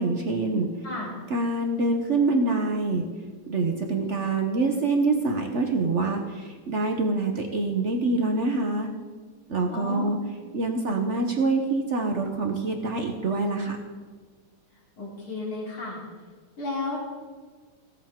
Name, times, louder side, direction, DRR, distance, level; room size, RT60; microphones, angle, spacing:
voice 1, 0.0-0.7 1.3-3.0 3.5-8.9 9.5-10.2 10.5-13.8, right 3 dB, 55° right, 3 dB, 0.8 m, -25 dB
voice 2, 9.7-10.1 15.0-16.0 16.6-17.0, left 3 dB, 40° left, -4 dB, 3.7 m, -32 dB
17.0 x 8.1 x 3.7 m, 1.5 s
omnidirectional pair, 2.4 m